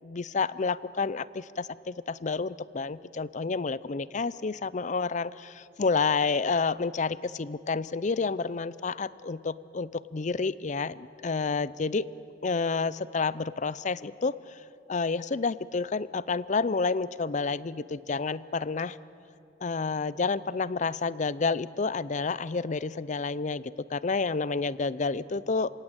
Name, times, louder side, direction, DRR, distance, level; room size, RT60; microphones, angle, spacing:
voice 1, 0.0-12.1 12.4-14.6 14.9-19.0 19.6-25.7, left 4 dB, 40° left, 19 dB, 0.5 m, -29 dB
28.0 x 17.5 x 8.9 m, 2.7 s
head